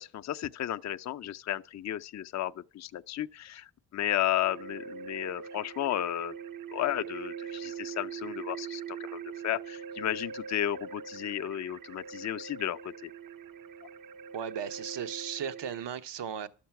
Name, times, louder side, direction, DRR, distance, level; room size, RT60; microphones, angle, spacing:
voice 1, 0.0-6.4 6.7-13.1, left 12 dB, 40° left, 0.5 m, -33 dB
sound 1, 4.4-15.9, right 7 dB, 50° right, 0.6 m, -42 dB
voice 2, 14.3-16.5, right 8 dB, 80° right, 1.0 m, -36 dB
12.0 x 7.2 x 5.8 m
cardioid pair, 95°, 42 cm